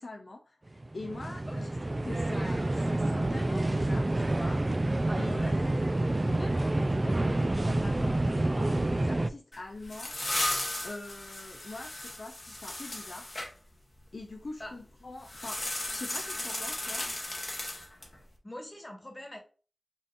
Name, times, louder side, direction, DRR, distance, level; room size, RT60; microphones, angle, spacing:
voice 1, 0.0-5.6 6.3-10.2 10.8-13.3 14.1-17.1, left 2 dB, 70° left, 0.5 m, -44 dB
sound 1, 0.7-9.3, right 2 dB, 35° right, 0.3 m, -28 dB
voice 2, 5.2-6.0 14.6-14.7 18.4-19.4, left 1 dB, 30° left, 1.5 m, -43 dB
sound 2, 9.5-13.5 15.2-18.2, left 1 dB, 50° left, 1.1 m, -35 dB
5.4 x 2.8 x 2.5 m
wide cardioid pair, 60°, 0 cm